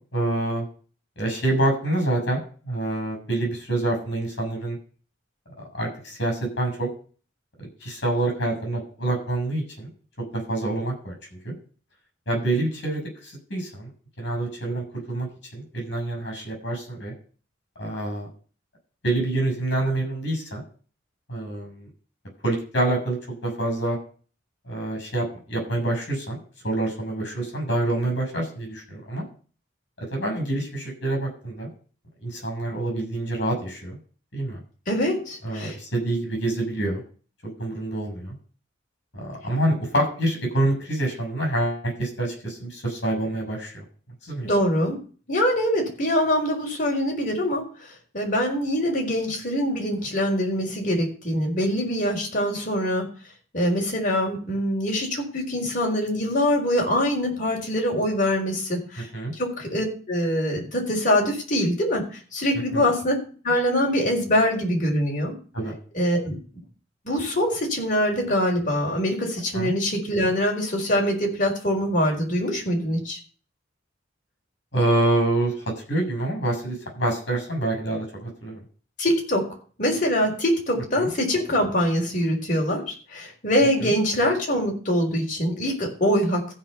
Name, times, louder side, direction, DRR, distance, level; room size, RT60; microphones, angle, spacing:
voice 1, 0.1-0.7 1.2-4.8 5.7-6.9 7.6-9.9 10.3-11.1 11.4-11.5 12.3-13.9 14.2-17.1 17.8-18.3 19.0-20.6 21.3-21.9 22.4-23.2 23.4-24.0 24.6-26.4 26.6-29.2 30.1-31.7 32.2-34.0 34.3-34.6 35.4-37.0 37.6-38.4 39.1-43.8 44.2-44.5 59.1-59.3 62.7-62.9 65.5-65.7 69.5-69.7 74.7-75.5 75.9-78.6 81.0-81.1 83.8-83.9, right 1 dB, 60° left, 2 dB, 7.6 m, -26 dB
voice 2, 34.9-35.8 44.4-45.0 45.3-47.6 48.1-53.0 53.5-63.2 63.4-65.3 65.9-66.4 67.0-73.2 79.0-79.5 79.8-86.5, equal, 45° left, 0 dB, 4.6 m, -24 dB
15.0 x 5.4 x 7.0 m, 0.40 s
head